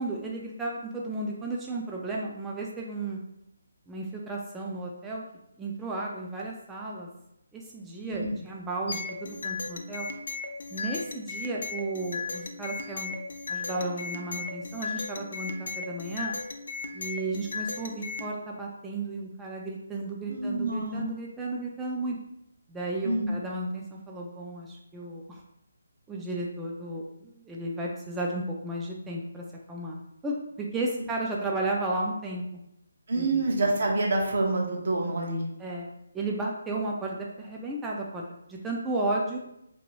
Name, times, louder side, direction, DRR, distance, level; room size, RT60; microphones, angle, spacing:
voice 1, 0.0-3.2 3.9-5.2 5.6-7.1 7.5-10.1 10.7-13.2 13.5-16.4 16.9-22.2 22.7-25.4 26.1-30.0 30.2-32.5 33.1-33.4 35.6-38.2 38.5-39.4, right 2 dB, 10° right, -3 dB, 0.3 m, -33 dB
sound 1, 8.9-18.3, left 4 dB, 65° left, 0.4 m, -36 dB
voice 2, 20.3-21.0 23.0-23.3 33.1-35.4, right 2 dB, 55° right, 0 dB, 0.7 m, -27 dB
2.7 x 2.5 x 3.0 m, 0.82 s
figure-of-eight pair, 150°, 0 cm